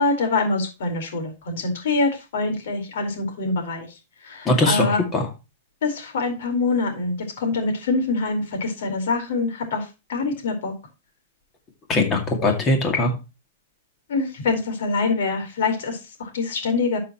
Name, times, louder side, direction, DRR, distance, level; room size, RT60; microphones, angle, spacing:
voice 1, 0.0-3.9 4.2-5.0 5.8-10.7 14.1-17.0, left 3 dB, 65° left, 5 dB, 4.5 m, -25 dB
voice 2, 4.5-5.3 11.9-13.1, left 2 dB, 20° left, 4 dB, 2.3 m, -21 dB
12.5 x 6.8 x 3.0 m, 0.28 s
supercardioid pair, 170°, 0 cm